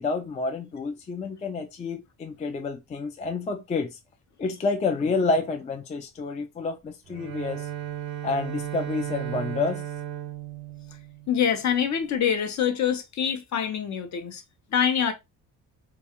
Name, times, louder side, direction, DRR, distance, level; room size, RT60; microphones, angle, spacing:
voice 1, 0.0-4.0 4.4-7.7 8.2-9.8, left 3 dB, 20° left, 0.3 m, -29 dB
Bowed string instrument, 7.1-11.7, right 13 dB, 80° right, 0.7 m, -35 dB
voice 2, 11.3-14.4 14.7-15.1, left 8 dB, 50° left, 0.7 m, -25 dB
2.4 x 2.3 x 2.8 m
cardioid pair, 105°, 36 cm